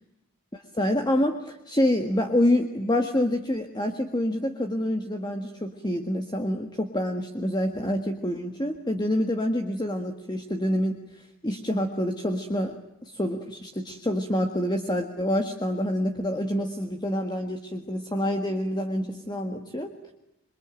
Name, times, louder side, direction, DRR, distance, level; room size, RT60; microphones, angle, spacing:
voice 1, 0.8-12.8 13.0-20.1, left 1 dB, 20° left, 5 dB, 1.7 m, -27 dB
27.0 x 23.5 x 9.1 m, 0.86 s
head